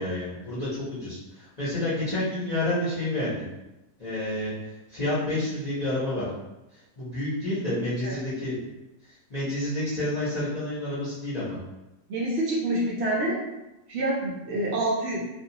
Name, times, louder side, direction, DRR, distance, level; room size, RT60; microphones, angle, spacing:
voice 1, 0.0-3.4 4.0-4.5 4.9-6.3 7.0-8.6 9.3-11.6, left 1 dB, 35° left, -11 dB, 0.7 m, -29 dB
voice 2, 12.1-13.4 13.9-15.2, right 1 dB, 65° right, -3 dB, 0.7 m, -27 dB
2.5 x 2.2 x 2.7 m, 0.98 s
omnidirectional pair, 1.5 m